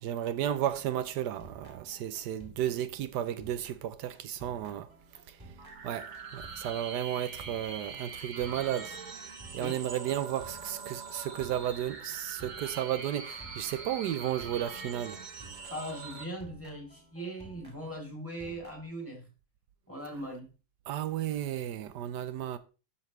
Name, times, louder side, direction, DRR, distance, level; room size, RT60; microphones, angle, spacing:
voice 1, 0.0-4.9 5.3-5.4 5.8-9.0 9.5-15.2 20.9-22.6, right 11 dB, 85° right, 1.2 m, -33 dB
sound 1, 0.5-16.0 16.4-18.9, right 2 dB, 15° right, 2.2 m, -54 dB
sound 2, 5.6-16.2, right 4 dB, 35° right, 0.8 m, -43 dB
voice 2, 15.7-19.3 19.9-20.5, right 1 dB, 10° left, 3.1 m, -40 dB
12.0 x 5.7 x 3.2 m
omnidirectional pair, 1.8 m